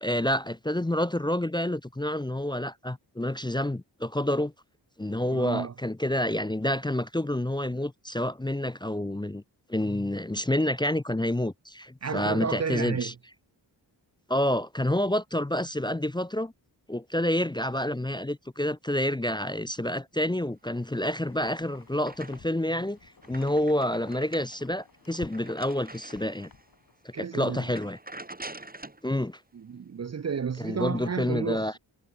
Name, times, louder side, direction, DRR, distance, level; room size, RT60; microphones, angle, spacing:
voice 1, 0.0-4.5 5.0-9.4 9.7-13.1 14.3-16.5 16.9-26.5 27.0-28.0 29.0-29.4 30.6-31.8, left 1 dB, 10° left, 0.6 m, -28 dB
voice 2, 5.2-5.7 12.0-13.1 27.1-27.7 29.5-31.7, right 6 dB, 40° right, 0.6 m, -32 dB
Wind, 20.7-27.2, left 5 dB, 50° left, 4.1 m, -53 dB
sound 1, 21.1-22.7 23.0-26.7 27.1-27.3 27.6-29.1, right 2 dB, 20° right, 5.0 m, -46 dB
wide cardioid pair, 115°, 43 cm